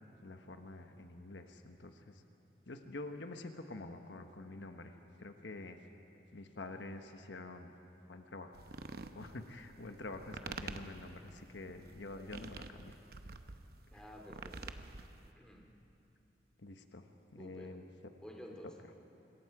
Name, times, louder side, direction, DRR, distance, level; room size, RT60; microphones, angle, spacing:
voice 1, 0.2-2.2 2.7-5.8 6.3-7.7 8.1-8.6 9.1-12.9 16.6-17.0 17.3-17.8, left 2 dB, 85° left, 6 dB, 1.1 m, -47 dB
sound 1, 8.5-15.3, right 3 dB, 60° right, 0.8 m, -48 dB
voice 2, 13.9-14.8 15.4-15.7 17.4-17.8 18.2-18.9, equal, 5° left, 0 dB, 2.3 m, -52 dB
26.0 x 21.5 x 4.8 m, 2.8 s
head